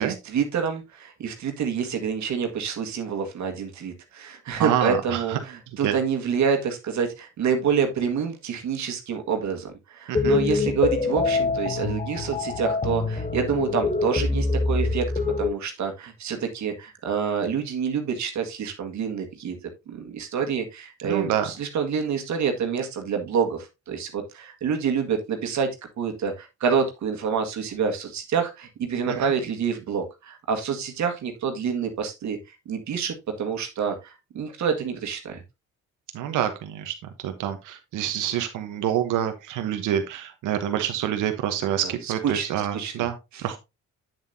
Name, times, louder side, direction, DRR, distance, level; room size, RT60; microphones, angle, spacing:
voice 1, 0.0-15.1 15.4-19.6 19.9-25.7 26.0-32.4 32.7-35.4 41.8-43.1 43.3-43.4, right 6 dB, 65° right, 4 dB, 1.7 m, -27 dB
voice 2, 4.6-5.4 5.8-5.9 10.1-10.4 21.0-21.4 29.1-29.3 36.1-36.9 37.2-43.6, right 10 dB, 85° right, 7 dB, 1.0 m, -27 dB
sound 1, 10.1-15.5, left 4 dB, 25° left, 1.0 m, -25 dB
8.0 x 7.6 x 2.7 m, 0.23 s
cardioid pair, 90°, 30 cm